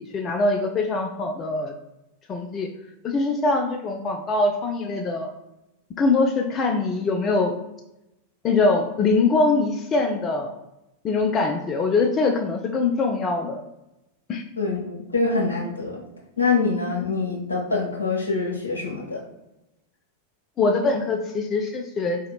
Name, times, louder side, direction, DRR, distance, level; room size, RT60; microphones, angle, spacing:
voice 1, 0.0-1.7 2.3-2.7 3.0-5.3 6.0-7.5 8.4-10.5 11.0-13.6 14.3-14.4 20.6-22.2, left 3 dB, 25° left, 3 dB, 0.3 m, -23 dB
voice 2, 14.6-16.0 16.4-19.2, left 4 dB, 75° left, -2 dB, 0.9 m, -25 dB
4.0 x 2.8 x 2.2 m, 0.92 s
figure-of-eight pair, 90°, 0 cm